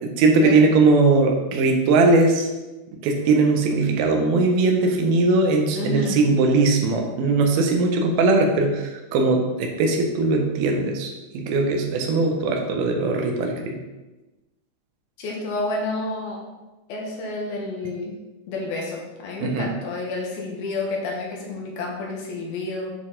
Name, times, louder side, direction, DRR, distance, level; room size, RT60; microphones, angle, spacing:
voice 1, 0.0-2.5 3.0-13.8 19.4-19.7, right 3 dB, 85° right, 2 dB, 2.8 m, -20 dB
voice 2, 5.7-6.2 15.2-16.4 16.9-18.2 18.5-22.9, left 2 dB, 80° left, -1 dB, 3.1 m, -30 dB
9.2 x 4.2 x 3.7 m, 1.1 s
omnidirectional pair, 4.3 m